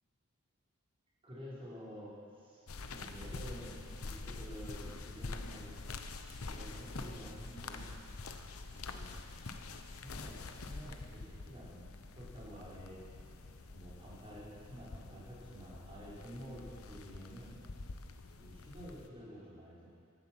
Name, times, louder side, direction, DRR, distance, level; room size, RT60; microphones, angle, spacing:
voice 1, 1.2-5.7 6.4-7.9 8.7-9.1 10.0-10.4 10.6-11.9 12.2-13.0 13.7-17.6 18.4-19.9, equal, 25° right, -8 dB, 4.6 m, -50 dB
sound 1, 2.7-19.1, left 3 dB, 85° left, 0.9 m, -46 dB
15.5 x 11.5 x 6.0 m, 2.3 s
head